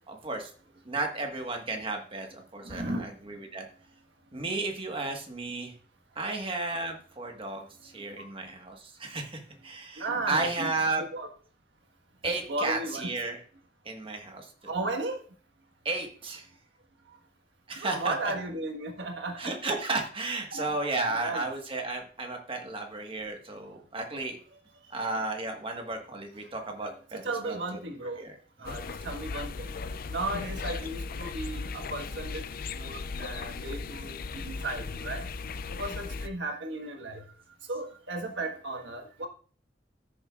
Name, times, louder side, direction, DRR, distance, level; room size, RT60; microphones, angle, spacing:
voice 1, 0.1-0.5 0.8-3.7 4.3-5.7 6.1-11.0 12.2-13.4 13.8-14.5 15.8-16.5 17.7-18.1 19.4-24.4 24.9-27.6 28.2-28.3 28.6-28.8, right 3 dB, 30° right, 3 dB, 1.5 m, -33 dB
voice 2, 2.6-3.1 10.0-11.3 12.2-13.1 14.7-15.2 17.8-19.5 20.5-21.5 25.0-25.1 26.8-28.2 28.6-29.8 30.1-32.4 32.8-35.3 35.7-37.3 37.7-39.3, right 2 dB, 80° right, 3 dB, 1.5 m, -35 dB
sound 1, 28.6-36.3, left 4 dB, 55° left, 0.5 m, -37 dB
13.5 x 6.9 x 2.4 m, 0.42 s
head